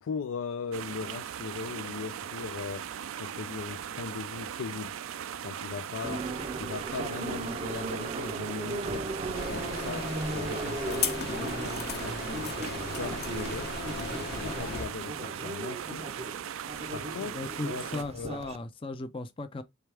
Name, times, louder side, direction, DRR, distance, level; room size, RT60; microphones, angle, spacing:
voice 1, 0.0-2.9 3.2-5.0 5.4-9.1 9.5-12.5 12.9-16.1 16.9-18.4, left 5 dB, 85° left, 0.4 m, -39 dB
sound 1, 0.7-18.0, right 9 dB, 85° right, 0.4 m, -39 dB
Subway metro underground, 6.0-18.6, right 2 dB, 30° right, 0.5 m, -37 dB
sound 2, 9.3-14.8, left 5 dB, 50° left, 0.8 m, -36 dB
voice 2, 17.3-19.6, left 2 dB, 25° left, 0.4 m, -37 dB
4.6 x 3.4 x 3.3 m
head